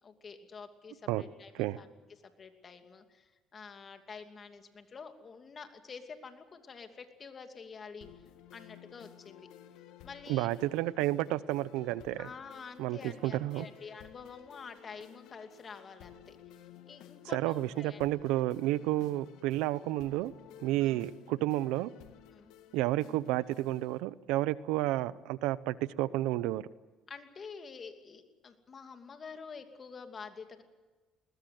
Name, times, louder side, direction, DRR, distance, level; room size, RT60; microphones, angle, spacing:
voice 1, 0.0-1.9 2.4-8.1 8.5-9.5 10.0-10.6 12.2-16.4 16.9-18.0 20.8-21.0 22.3-22.5 27.1-30.6, left 5 dB, 40° left, 6 dB, 2.7 m, -48 dB
sound 1, 8.0-24.0, left 11 dB, 85° left, 1.7 m, -54 dB
voice 2, 10.3-12.3 12.8-13.7 17.3-20.3 20.6-21.9 22.7-26.7, right 16 dB, 90° right, 18 dB, 0.7 m, -31 dB
21.0 x 20.5 x 7.8 m, 1.3 s
cardioid pair, 95°, 0 cm